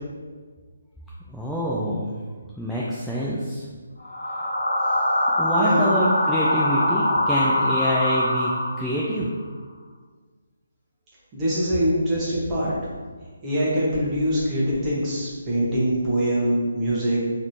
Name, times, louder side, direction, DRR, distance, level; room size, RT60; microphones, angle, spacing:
voice 1, 1.3-2.1 2.6-3.6 5.4-9.3, equal, ahead, -8 dB, 0.4 m, -26 dB
sound 1, 4.0-9.1, left 1 dB, 75° left, 0.9 m, -23 dB
voice 2, 5.6-5.9 11.3-12.7 13.4-17.2, equal, 20° right, -8 dB, 1.2 m, -23 dB
3.8 x 3.1 x 2.7 m, 1.5 s
figure-of-eight pair, 145°, 0 cm